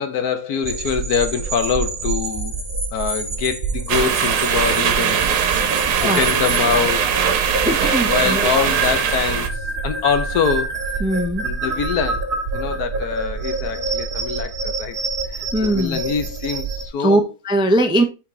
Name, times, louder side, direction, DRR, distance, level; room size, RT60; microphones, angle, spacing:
voice 1, 0.0-2.5 2.9-7.1 8.0-9.5 9.8-11.0 11.4-15.0 15.3-17.2, left 7 dB, 75° left, 1.4 m, -24 dB
sound 1, 0.6-16.9, right 3 dB, 35° right, 1.3 m, -27 dB
sound 2, 3.9-9.5, right 8 dB, 85° right, 1.4 m, -20 dB
voice 2, 7.7-8.6 11.0-11.5 15.5-16.0 17.0-18.0, right 1 dB, 5° right, 0.5 m, -20 dB
6.0 x 4.5 x 3.8 m
omnidirectional pair, 1.7 m